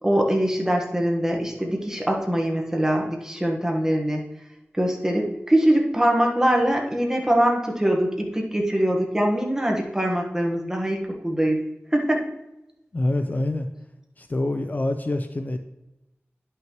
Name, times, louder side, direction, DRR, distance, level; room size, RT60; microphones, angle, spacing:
voice 1, 0.0-4.2 4.7-11.6 11.9-12.2, right 1 dB, 10° right, 0 dB, 1.3 m, -23 dB
voice 2, 12.9-13.7 14.2-15.6, left 1 dB, 40° left, 7 dB, 0.4 m, -26 dB
10.5 x 5.8 x 3.0 m, 0.92 s
wide cardioid pair, 85°, 5 cm